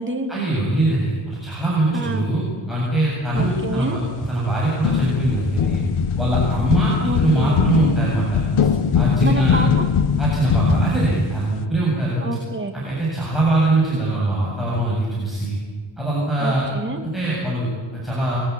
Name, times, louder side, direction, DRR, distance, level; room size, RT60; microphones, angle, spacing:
voice 1, 0.3-4.0 4.3-5.8 6.2-8.4 8.9-9.6 10.2-12.2 12.7-15.6 16.0-16.7 17.0-18.4, right 2 dB, ahead, -6 dB, 7.7 m, -22 dB
voice 2, 1.9-2.2 3.3-4.0 7.0-7.6 9.2-9.8 12.2-12.8 16.4-17.0, right 2 dB, 25° right, 4 dB, 2.5 m, -27 dB
sound 1, 3.3-4.5 4.8-11.6, left 7 dB, 75° left, 1.4 m, -21 dB
29.0 x 22.5 x 8.6 m, 1.5 s
wide cardioid pair, 175°, 50 cm